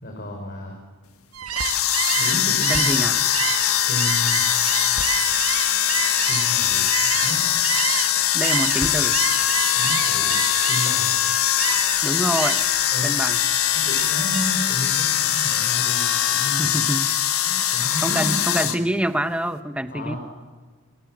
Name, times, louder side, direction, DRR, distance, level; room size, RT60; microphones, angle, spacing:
voice 1, 0.0-0.8 2.1-3.0 3.9-4.4 6.3-7.4 9.7-11.1 12.9-13.1 13.7-16.8 17.4-18.4 18.6-18.8 19.9-20.2, equal, 45° left, 2 dB, 4.9 m, -32 dB
Gull seagull, 1.3-8.1 8.4-11.1 11.6-12.0 12.3-12.8 13.2-14.7, right 9 dB, 90° right, 1.4 m, -29 dB
sound 1, 1.5-18.8, left 11 dB, 80° left, 1.6 m, -22 dB
voice 2, 2.7-3.2 8.3-9.2 12.0-12.6 13.0-13.4 16.6-17.1 18.0-20.2, right 1 dB, 5° right, 10 dB, 0.9 m, -25 dB
29.5 x 22.5 x 7.5 m, 1.4 s
head